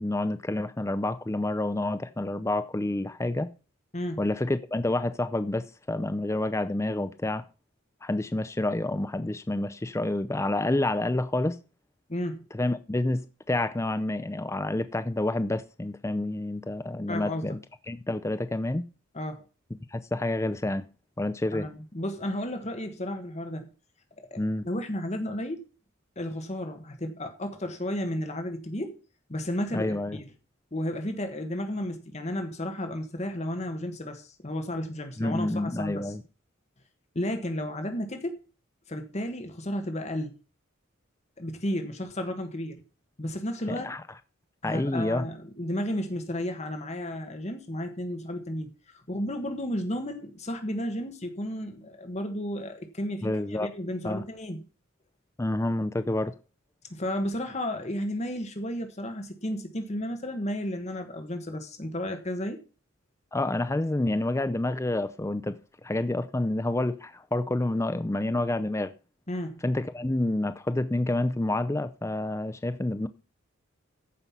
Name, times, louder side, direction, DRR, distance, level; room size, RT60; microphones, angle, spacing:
voice 1, 0.0-3.5 4.2-7.5 8.0-11.6 12.5-17.6 17.9-18.8 19.9-20.8 21.2-21.7 24.4-24.7 29.7-30.2 35.2-36.2 43.7-44.0 44.6-45.3 53.2-53.7 54.0-54.2 55.4-56.3 63.3-68.9 69.6-73.1, left 2 dB, 15° left, 0.5 m, -28 dB
voice 2, 3.9-4.2 12.1-12.5 17.1-17.6 19.1-19.4 21.5-23.7 24.2-25.6 26.2-29.0 29.3-30.2 30.7-36.1 37.1-38.4 38.9-40.3 41.4-42.8 43.2-43.9 44.6-54.6 56.9-62.6 69.3-69.6, left 1 dB, 35° left, 1.4 m, -33 dB
14.0 x 5.5 x 5.8 m
head